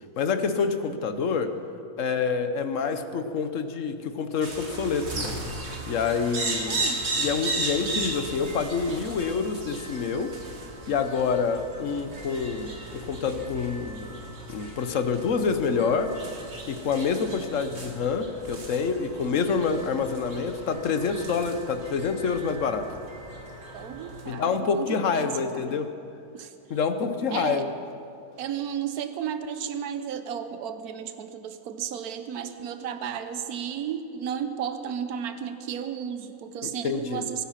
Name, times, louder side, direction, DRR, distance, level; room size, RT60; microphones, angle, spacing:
voice 1, 0.2-1.5 2.0-5.3 5.9-6.8 7.2-10.3 10.9-16.1 16.7-22.9 24.3-25.9 26.7-27.7 36.6-37.2, left 5 dB, 60° left, 9 dB, 1.3 m, -27 dB
sound 1, 4.4-24.3, right 2 dB, 45° right, 2.0 m, -36 dB
voice 2, 6.7-7.1 23.7-25.8 26.3-26.5 27.3-27.6 28.4-37.4, right 8 dB, 75° right, 9 dB, 1.4 m, -33 dB
23.0 x 9.8 x 5.8 m, 2.6 s
omnidirectional pair, 1.6 m